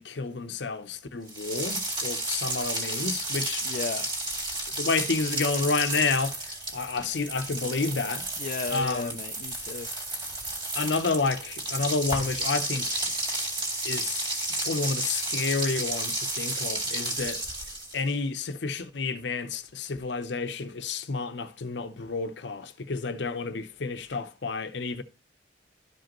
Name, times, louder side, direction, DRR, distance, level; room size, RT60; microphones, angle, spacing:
voice 1, 0.0-3.7 4.8-8.3 8.7-9.2 10.7-13.1 13.8-14.3 14.6-17.4 17.9-25.0, left 4 dB, 65° left, 0.7 m, -30 dB
sound 1, 1.3-18.1, right 2 dB, 25° right, 2.1 m, -32 dB
voice 2, 3.6-4.1 8.4-9.9, left 4 dB, 45° left, 0.3 m, -34 dB
12.0 x 5.1 x 3.0 m
head